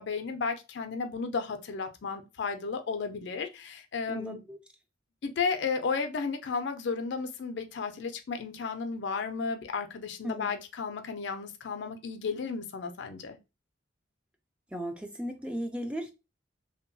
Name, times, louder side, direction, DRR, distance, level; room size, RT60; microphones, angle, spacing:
voice 1, 0.0-4.4 5.2-13.4, left 5 dB, 65° left, 0.4 m, -33 dB
voice 2, 4.1-4.6 10.2-10.5 14.7-16.1, equal, 5° right, 0.3 m, -36 dB
2.8 x 2.2 x 2.6 m
head